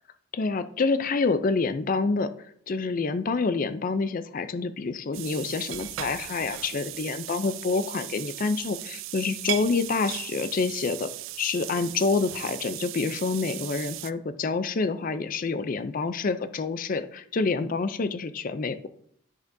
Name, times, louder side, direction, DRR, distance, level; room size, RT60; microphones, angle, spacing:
voice 1, 0.3-2.3 2.7-11.1 11.4-18.9, left 4 dB, 40° left, 12 dB, 0.4 m, -27 dB
sound 1, 5.1-14.1, right 15 dB, 65° right, 0.3 m, -37 dB
9.7 x 6.6 x 2.6 m, 0.65 s
head